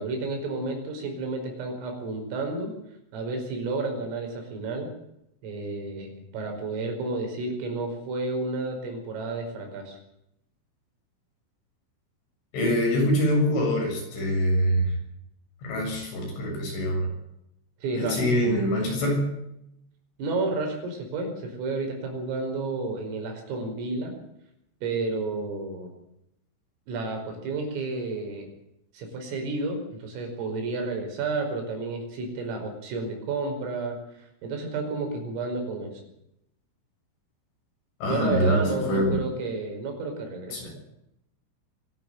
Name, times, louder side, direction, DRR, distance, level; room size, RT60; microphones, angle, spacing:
voice 1, 0.0-2.7 3.1-4.9 5.4-10.0 17.8-18.4 20.2-24.1 24.8-25.9 26.9-28.5 28.9-35.9 38.0-40.8, right 3 dB, 85° right, 3 dB, 7.8 m, -31 dB
voice 2, 12.5-14.9 15.6-17.1 17.9-19.3 38.0-39.2 40.5-40.7, equal, 70° left, 1 dB, 9.8 m, -24 dB
23.5 x 12.5 x 9.2 m, 0.80 s
omnidirectional pair, 5.8 m